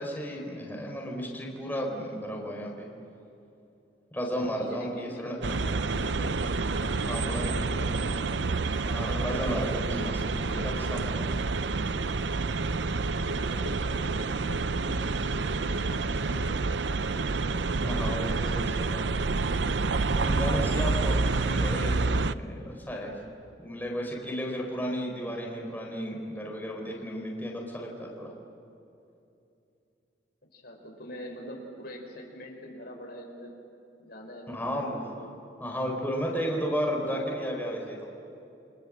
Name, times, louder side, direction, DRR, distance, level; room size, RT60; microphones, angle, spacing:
voice 1, 0.0-2.9 4.1-5.4 7.1-7.8 8.8-11.4 17.8-19.2 20.1-22.0 22.3-23.2 23.6-28.3 34.5-35.2 35.6-38.0, equal, 10° left, -1 dB, 4.6 m, -33 dB
voice 2, 4.3-6.4 6.7-8.6 9.8-10.3 13.3-17.0 18.4-18.6 30.5-33.5 34.0-35.3, equal, 60° left, 1 dB, 5.3 m, -44 dB
sound 1, 5.4-22.3, right 3 dB, 75° right, 0.7 m, -28 dB
29.5 x 25.5 x 7.7 m, 2.7 s
head